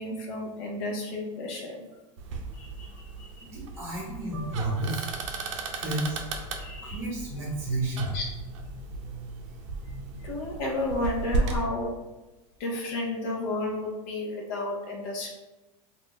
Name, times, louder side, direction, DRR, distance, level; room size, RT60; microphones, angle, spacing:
voice 1, 0.0-1.9 2.5-3.5 4.7-5.3 6.6-7.1 8.1-8.2 9.9-10.0 10.2-12.1 12.6-15.3, left 2 dB, 45° left, -1 dB, 0.7 m, -33 dB
sound 1, 2.2-11.6, right 3 dB, 70° right, 0.5 m, -35 dB
voice 2, 3.5-5.1 5.5-6.2 6.8-8.1, right 2 dB, 15° right, -5 dB, 1.1 m, -31 dB
2.4 x 2.3 x 3.6 m, 1.1 s
supercardioid pair, 165°, 17 cm